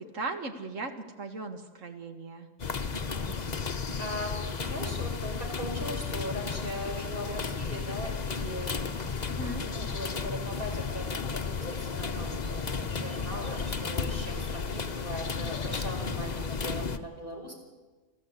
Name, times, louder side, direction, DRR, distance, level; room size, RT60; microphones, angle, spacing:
voice 1, 0.1-0.9 1.2-2.5 9.3-9.7, right 3 dB, 75° right, 7 dB, 2.2 m, -37 dB
sound 1, 2.6-17.0, left 5 dB, 35° left, 1.0 m, -33 dB
voice 2, 2.9-3.3 4.0-8.8 9.6-17.5, equal, 45° right, 1 dB, 5.2 m, -39 dB
26.5 x 14.5 x 8.4 m, 1.3 s
omnidirectional pair, 1.3 m